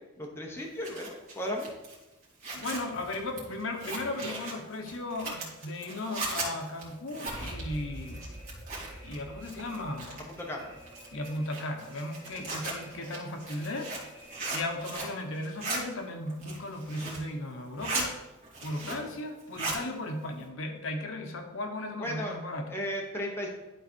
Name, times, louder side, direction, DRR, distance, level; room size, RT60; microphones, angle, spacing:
voice 1, 0.2-1.7 10.2-10.7 12.3-12.5 22.0-22.4 22.7-23.5, equal, 10° left, -1 dB, 1.2 m, -35 dB
Zipper (clothing), 0.6-9.2 9.4-10.4 10.9-15.2 15.4-15.8 16.3-17.3 17.6-18.1 18.4-19.1 19.4-19.8, right 2 dB, 45° right, 2.7 m, -37 dB
voice 2, 2.5-8.3 9.0-10.3 11.1-13.9 14.5-18.1 18.6-22.8, left 1 dB, 65° left, 4 dB, 1.0 m, -36 dB
Alarm, 7.3-15.0, equal, 10° right, 2.8 m, -47 dB
11.5 x 4.2 x 4.6 m, 1.0 s
head